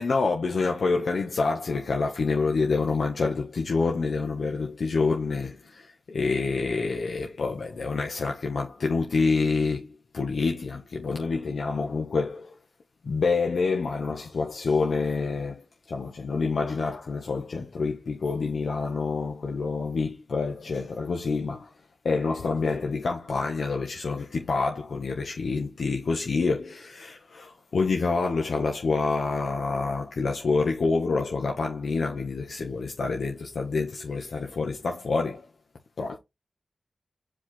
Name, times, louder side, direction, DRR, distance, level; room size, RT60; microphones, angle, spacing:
voice 1, 0.0-12.5 13.0-21.7 22.0-35.5 36.0-36.2, left 4 dB, 85° left, 1.2 m, -27 dB
4.9 x 4.4 x 4.3 m
cardioid pair, 50°, 0 cm